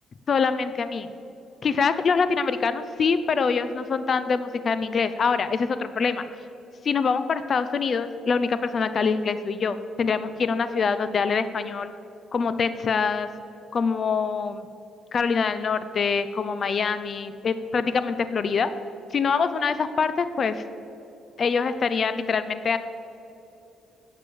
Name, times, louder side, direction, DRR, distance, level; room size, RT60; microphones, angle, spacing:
voice 1, 0.3-1.1 1.6-6.2 6.8-11.9 12.3-13.3 13.7-14.7 15.1-18.7 19.1-20.6 21.4-22.8, left 5 dB, 50° left, 12 dB, 0.5 m, -24 dB
8.8 x 6.7 x 8.4 m, 2.9 s
cardioid pair, 90°, 0 cm